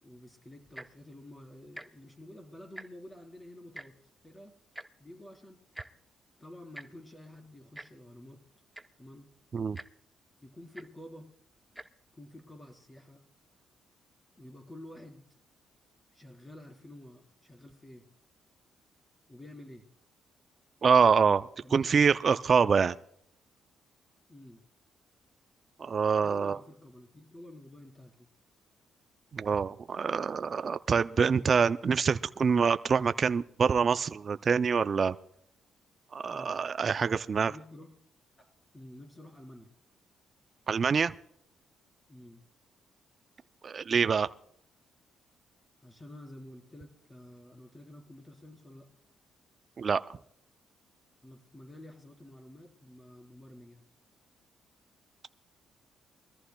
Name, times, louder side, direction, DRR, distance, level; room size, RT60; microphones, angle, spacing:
voice 1, 0.0-4.0 4.2-4.5 5.0-5.6 6.4-8.4 9.0-9.3 10.4-11.3 12.1-13.2 14.4-15.2 16.1-18.1 19.3-19.8 21.6-21.9 24.3-24.6 26.2-28.3 36.3-36.6 37.5-37.9 38.7-39.7 42.1-42.4 45.8-48.9 51.2-53.8, left 1 dB, 15° left, 1 dB, 3.9 m, -50 dB
Tick-tock, 0.6-1.0 1.7-1.9 2.2-2.3 2.6-3.1 3.7-3.9 4.7-4.9 5.7-5.9 6.7-6.9 7.7-7.9 8.5-8.6 8.7-9.0 9.7-9.9 10.7-10.9 11.7-11.9 12.6-12.7, right 1 dB, 5° right, 0.7 m, -45 dB
voice 2, 20.8-22.9 25.8-26.6 29.3-35.2 36.1-37.5 40.7-41.1 43.6-44.3 49.8-50.0, right 6 dB, 45° right, 12 dB, 0.4 m, -25 dB
23.5 x 14.0 x 2.2 m, 0.69 s
cardioid pair, 90°, 0 cm